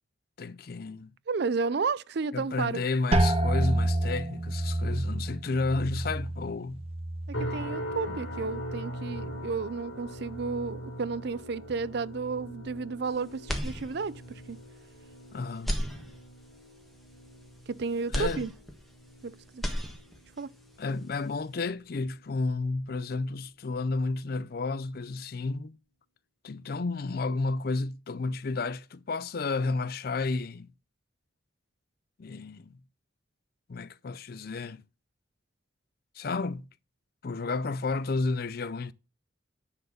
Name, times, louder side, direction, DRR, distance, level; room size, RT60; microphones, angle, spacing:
voice 1, 0.4-1.1 2.3-6.9 8.1-8.2 15.3-15.7 18.1-18.5 20.8-25.8 26.4-30.7 32.2-32.8 33.7-34.8 36.2-36.7 37.2-38.9, left 3 dB, 50° left, 0.5 m, -32 dB
voice 2, 1.3-2.8 7.3-14.6 17.7-18.5 19.2-19.6 20.4-20.5, right 4 dB, 55° right, 0.4 m, -32 dB
sound 1, 3.1-8.7 9.1-9.8 10.3-10.7, right 1 dB, 30° right, 1.0 m, -30 dB
sound 2, 7.3-22.5 22.9-23.3 23.8-24.0, equal, 80° left, 3.6 m, -42 dB
sound 3, 13.4-14.4 14.8-14.9 15.5-16.6 18.1-19.2 19.5-20.4, equal, ahead, 1.4 m, -34 dB
9.8 x 4.7 x 6.4 m
head